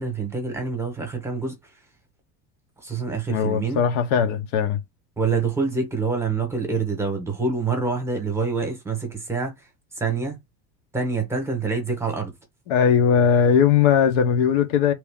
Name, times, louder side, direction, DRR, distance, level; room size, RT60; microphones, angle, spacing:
voice 1, 0.0-1.5 2.8-3.8 5.2-9.5 10.0-10.4 10.9-12.3, right 4 dB, 10° right, 1.0 m, -26 dB
voice 2, 3.3-4.8 12.7-14.9, left 7 dB, 75° left, 1.0 m, -19 dB
3.0 x 2.5 x 3.5 m
cardioid pair, 160°, 31 cm